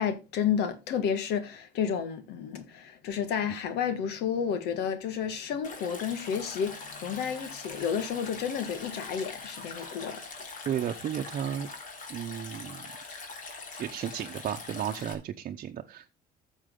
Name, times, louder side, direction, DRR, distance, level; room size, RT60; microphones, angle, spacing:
voice 1, 0.0-10.2, left 7 dB, 85° left, 1.6 m, -31 dB
Stream, 5.6-15.1, left 3 dB, 50° left, 3.6 m, -43 dB
voice 2, 10.6-11.7 12.1-12.9 13.8-16.1, right 9 dB, 50° right, 0.9 m, -33 dB
12.0 x 7.3 x 3.8 m
cardioid pair, 110°, 17 cm